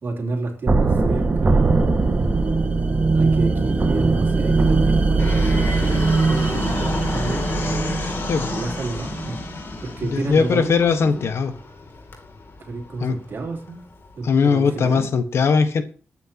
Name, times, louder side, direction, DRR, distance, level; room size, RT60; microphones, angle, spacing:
voice 1, 0.0-1.9 2.2-2.7 3.1-7.7 8.5-9.4 9.8-11.3 12.6-13.8 14.2-15.1, right 3 dB, 60° right, 1 dB, 3.3 m, -30 dB
sound 1, 0.7-9.5, right 3 dB, 40° right, 1.8 m, -20 dB
Fixed-wing aircraft airplane, 5.2-14.2, left 3 dB, 60° left, 2.8 m, -31 dB
voice 2, 10.0-11.5 13.0-13.2 14.2-15.8, left 5 dB, 80° left, 8 dB, 1.4 m, -19 dB
22.0 x 9.0 x 2.9 m, 0.40 s
wide cardioid pair, 110°, 4 cm